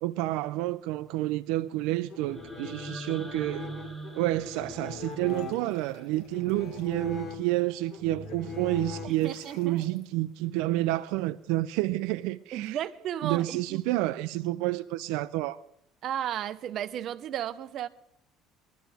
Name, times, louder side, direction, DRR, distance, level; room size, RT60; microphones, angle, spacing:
voice 1, 0.0-3.8 4.2-12.8 13.2-15.6, right 17 dB, 85° right, 0.5 m, -29 dB
sound 1, 2.1-9.6, left 4 dB, 35° left, 1.9 m, -41 dB
sound 2, 2.3-6.3, right 1 dB, 10° left, 1.6 m, -43 dB
sound 3, 5.0-7.1 9.1-10.2, left 3 dB, 75° left, 6.2 m, -57 dB
voice 2, 9.0-9.8 12.5-13.8 16.0-17.9, right 10 dB, 40° right, 0.7 m, -34 dB
22.0 x 12.5 x 3.5 m
cardioid pair, 175°, 0 cm